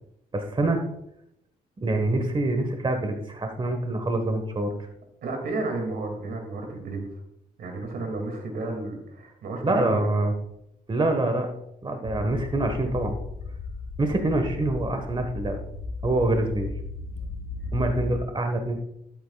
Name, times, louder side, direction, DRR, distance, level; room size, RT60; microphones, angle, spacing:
voice 1, 0.3-0.8 1.8-4.7 9.6-10.3 10.9-11.5 11.8-13.1 14.0-15.6 16.0-16.7 17.7-18.8, right 2 dB, 30° right, 5 dB, 1.3 m, -25 dB
voice 2, 5.2-7.0 7.6-10.1, right 2 dB, 80° right, 3 dB, 2.3 m, -32 dB
sound 1, 12.1-18.2, left 3 dB, 65° left, 1.1 m, -35 dB
12.0 x 8.4 x 2.3 m, 0.79 s
cardioid pair, 75°, 16 cm